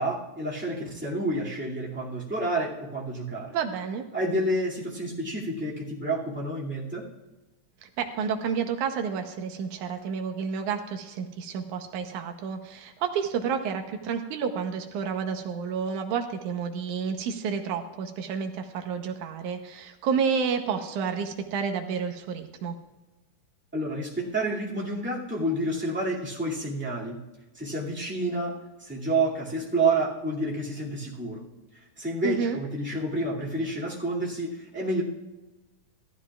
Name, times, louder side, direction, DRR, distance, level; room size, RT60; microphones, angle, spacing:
voice 1, 0.0-3.5 4.1-7.0 23.7-27.2 27.5-28.5 28.8-31.4 32.0-35.0, right 2 dB, 5° right, -6 dB, 1.8 m, -29 dB
voice 2, 3.5-4.0 7.8-22.8 32.2-32.6, right 6 dB, 75° right, 5 dB, 2.2 m, -30 dB
15.0 x 13.0 x 2.4 m, 1.1 s
omnidirectional pair, 3.7 m